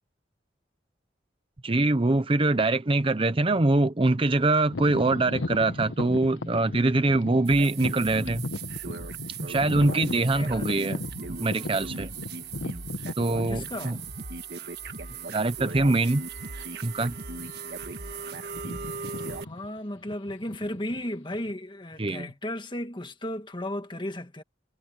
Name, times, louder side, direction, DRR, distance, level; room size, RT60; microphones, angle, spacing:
voice 1, 1.6-8.4 9.4-12.1 13.2-14.0 15.3-16.2 16.8-17.1 22.0-22.3, right 2 dB, 30° right, 0.7 m, -24 dB
sound 1, 4.7-14.5 15.1-15.2 15.9-16.1 16.4-16.6 17.3-17.8 18.1-21.5, left 2 dB, 90° left, 1.2 m, -37 dB
sound 2, 7.4-19.4, right 4 dB, 60° right, 1.7 m, -38 dB
voice 2, 10.3-11.0 13.5-14.0 19.3-24.4, left 1 dB, 25° left, 1.7 m, -35 dB
head